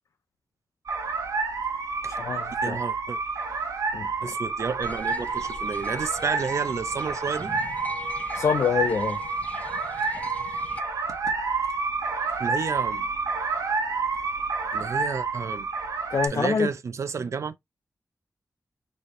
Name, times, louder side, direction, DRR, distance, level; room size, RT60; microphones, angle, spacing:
sound 1, 0.9-16.3, right 4 dB, 90° right, 1.2 m, -29 dB
voice 1, 2.1-2.8 3.9-4.3 8.3-9.2 16.1-16.7, left 6 dB, 65° left, 0.4 m, -26 dB
voice 2, 2.6-3.2 4.2-7.5 12.4-13.1 14.7-15.7 16.3-17.5, right 5 dB, 60° right, 0.5 m, -31 dB
sound 2, 4.8-10.8, left 2 dB, 25° left, 0.6 m, -41 dB
4.1 x 3.2 x 3.1 m
wide cardioid pair, 130°, 6 cm